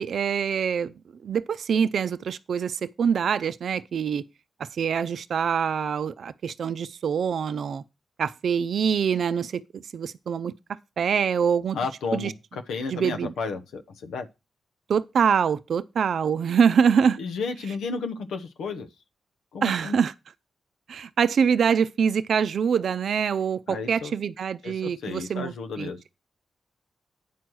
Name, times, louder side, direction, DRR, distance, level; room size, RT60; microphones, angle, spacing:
voice 1, 0.0-4.2 4.6-7.8 8.2-10.5 11.0-11.8 12.1-12.3 12.9-13.3 14.9-17.2 19.6-20.1 20.9-25.9, right 7 dB, 75° right, 0.5 m, -25 dB
voice 2, 11.7-14.3 17.2-18.9 19.5-20.0 23.7-24.1 24.6-26.0, left 4 dB, 85° left, 0.8 m, -32 dB
9.2 x 4.6 x 6.2 m
supercardioid pair, 50°, 0 cm